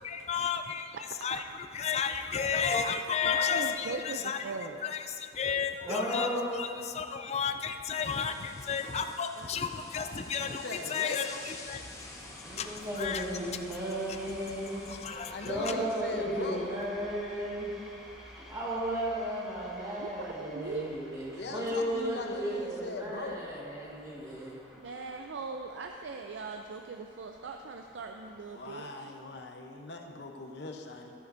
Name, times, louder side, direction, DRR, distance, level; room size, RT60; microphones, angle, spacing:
voice 1, 0.0-1.0 1.2-1.4 1.7-4.4 4.8-6.3 6.5-11.8 13.0-13.2 14.9-15.7, left 7 dB, 35° left, 7 dB, 0.4 m, -32 dB
voice 2, 3.2-4.8 9.4-10.2 20.0-20.9 24.8-29.1, right 4 dB, 80° right, 4 dB, 0.5 m, -40 dB
voice 3, 5.8-6.5 12.4-14.8 15.1-17.7 18.4-24.6, equal, 20° right, -6 dB, 1.7 m, -34 dB
sound 1, 8.0-15.0, left 2 dB, 15° left, 0.8 m, -49 dB
voice 4, 10.5-11.3 15.3-16.7 21.4-23.4 28.5-31.1, left 2 dB, 65° left, 3 dB, 0.8 m, -40 dB
sound 2, 11.8-28.7, equal, ahead, 1.4 m, -52 dB
14.0 x 9.3 x 2.6 m, 2.5 s
head